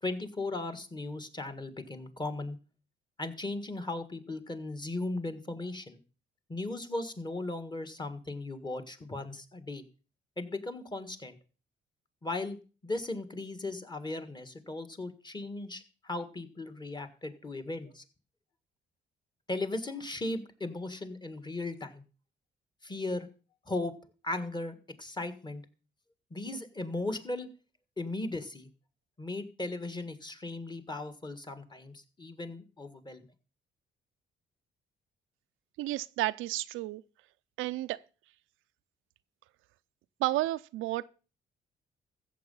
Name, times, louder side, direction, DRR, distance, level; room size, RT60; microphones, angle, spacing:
voice 1, 0.0-2.6 3.2-6.0 6.5-9.8 10.4-11.4 12.2-12.6 12.8-18.0 19.5-22.0 22.8-23.3 23.7-23.9 24.2-25.6 26.3-27.5 28.0-28.7 29.2-33.3, left 2 dB, 20° left, 1.7 m, -37 dB
voice 2, 35.8-37.0 37.6-38.0 40.2-41.1, right 17 dB, 90° right, 0.5 m, -31 dB
14.5 x 7.6 x 5.5 m
cardioid pair, 90°, 20 cm